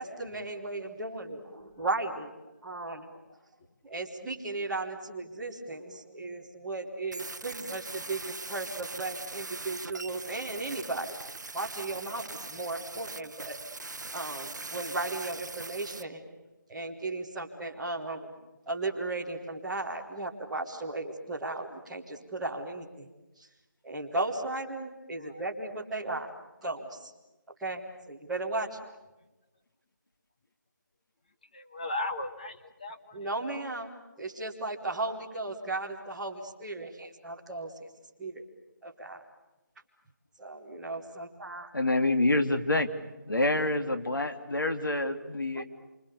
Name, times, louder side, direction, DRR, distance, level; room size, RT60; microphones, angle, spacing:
voice 1, 0.0-2.3 2.6-3.1 3.8-11.2 11.5-13.6 14.1-16.2 16.7-18.3 18.7-23.1 23.4-23.5 23.8-26.3 26.6-27.1 27.6-28.8 33.1-37.7 38.2-38.4 38.8-39.2 40.4-41.7 45.5-45.6, right 2 dB, ahead, -9 dB, 1.4 m, -36 dB
sound 1, 7.1-16.0, right 3 dB, 60° right, 0.9 m, -41 dB
voice 2, 31.5-33.2 41.7-41.9, left 2 dB, 25° left, 5 dB, 1.3 m, -37 dB
voice 3, 41.7-42.9 43.3-45.6, left 2 dB, 85° left, 7 dB, 2.9 m, -27 dB
28.5 x 26.0 x 6.9 m, 1.1 s
figure-of-eight pair, 175°, 11 cm